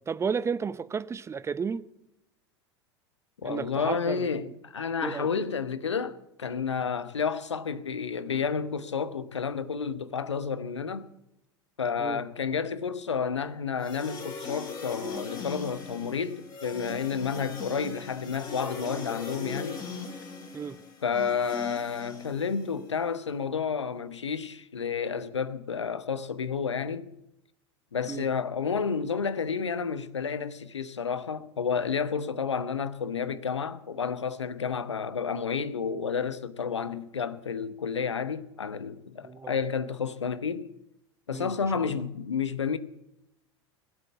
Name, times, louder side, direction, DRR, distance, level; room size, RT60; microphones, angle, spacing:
voice 1, 0.0-1.9 3.4-4.5 5.0-5.5 12.0-12.2 20.5-20.8 28.1-28.3 39.2-39.5 41.3-42.0, right 6 dB, 20° right, 0.7 m, -33 dB
voice 2, 3.4-11.1 11.8-19.9 21.0-27.1 27.9-40.7 41.3-42.8, left 6 dB, 85° left, 0.9 m, -31 dB
sound 1, 13.8-22.9, left 4 dB, 25° left, 4.4 m, -39 dB
20.5 x 8.1 x 8.2 m
figure-of-eight pair, 85°, 14 cm